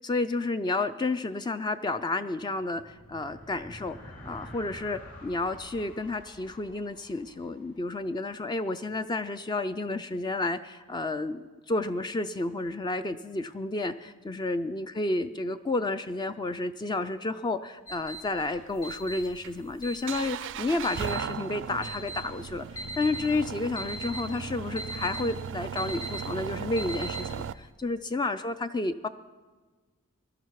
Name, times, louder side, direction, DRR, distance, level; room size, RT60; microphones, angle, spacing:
voice 1, 0.0-29.1, left 2 dB, 20° left, 11 dB, 0.3 m, -31 dB
sound 1, 2.6-8.3, left 1 dB, 40° left, 3.0 m, -48 dB
sound 2, 17.9-27.6, right 1 dB, 75° left, 1.5 m, -41 dB
sound 3, 18.4-27.5, right 7 dB, 60° right, 0.3 m, -37 dB
20.5 x 12.0 x 4.7 m, 1.4 s
head